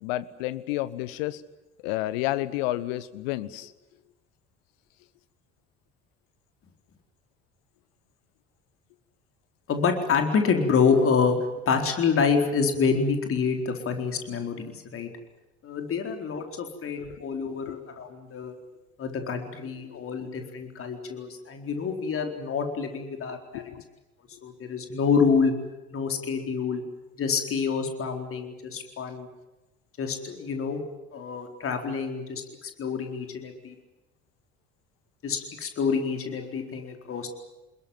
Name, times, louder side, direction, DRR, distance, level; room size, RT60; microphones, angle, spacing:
voice 1, 0.0-1.4 1.8-3.7 17.6-17.8 19.9-20.2 23.5-23.8 24.3-24.4, left 16 dB, 65° left, 16 dB, 1.3 m, -31 dB
voice 2, 9.7-15.1 15.6-18.6 19.0-23.6 24.4-25.5 25.9-26.8 27.2-29.3 30.0-30.8 31.1-33.7 35.2-37.3, left 5 dB, 40° left, 4 dB, 4.3 m, -27 dB
28.0 x 21.0 x 7.7 m, 1.1 s
figure-of-eight pair, 55°, 32 cm